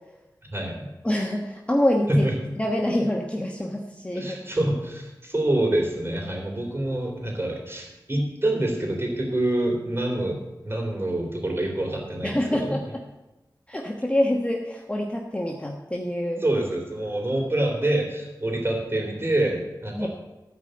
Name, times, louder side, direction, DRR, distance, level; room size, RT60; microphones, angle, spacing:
voice 1, 0.5-0.9 2.1-2.3 4.1-10.4 10.6-12.8 16.4-20.1, right 1 dB, 30° right, 0 dB, 3.6 m, -26 dB
voice 2, 1.0-2.3 2.6-4.4 12.2-12.8 13.7-16.4 20.0-20.1, left 1 dB, 15° left, 0 dB, 1.2 m, -26 dB
14.0 x 5.0 x 7.8 m, 1.0 s
wide cardioid pair, 55°, 8 cm